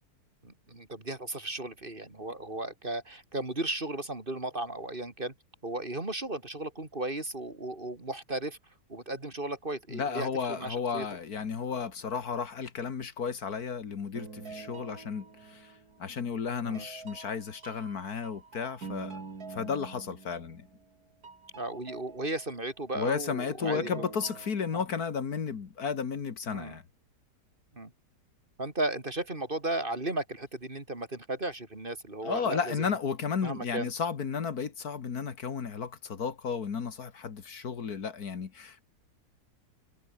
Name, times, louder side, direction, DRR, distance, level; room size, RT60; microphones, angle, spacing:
voice 1, 0.4-5.3 5.6-8.6 8.9-11.1 16.6-16.9 21.6-24.0 24.7-24.8 26.5-26.8 27.7-27.9 28.6-33.0 33.4-33.9, right 2 dB, 30° right, 3.4 m, -35 dB
voice 2, 9.9-15.7 16.0-19.2 19.5-20.7 23.0-26.8 32.2-38.8, left 6 dB, 70° left, 2.2 m, -33 dB
sound 1, 14.1-16.0 16.5-20.9 21.2-23.1 23.6-24.9, right 4 dB, 65° right, 3.3 m, -46 dB
omnidirectional pair, 1.7 m